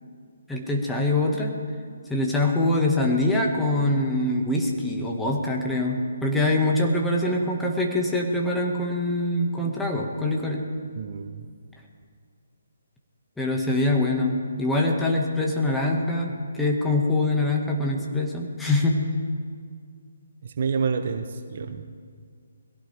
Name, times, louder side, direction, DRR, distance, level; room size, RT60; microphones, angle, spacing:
voice 1, 0.5-1.6 2.1-10.7 13.4-19.1, left 2 dB, 5° left, -1 dB, 1.7 m, -24 dB
voice 2, 10.9-11.4 20.4-21.9, right 5 dB, 50° right, 8 dB, 0.9 m, -28 dB
22.0 x 17.0 x 3.5 m, 2.1 s
figure-of-eight pair, 140°, 0 cm